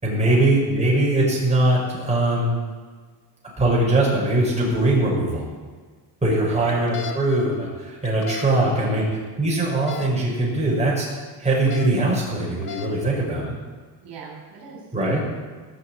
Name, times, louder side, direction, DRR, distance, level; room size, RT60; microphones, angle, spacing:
voice 1, 0.0-2.6 3.6-5.4 6.2-9.0 9.4-11.1 11.4-13.5 14.9-15.3, right 2 dB, 15° right, -5 dB, 5.4 m, -21 dB
sound 1, 6.7-7.2 8.0-8.5 9.7-10.1 11.5-11.9 12.5-12.9, left 6 dB, 45° left, 1.5 m, -34 dB
voice 2, 8.6-9.1 14.0-15.3, right 5 dB, 65° right, -2 dB, 4.2 m, -42 dB
18.0 x 6.5 x 8.6 m, 1.5 s
cardioid pair, 130°, 45 cm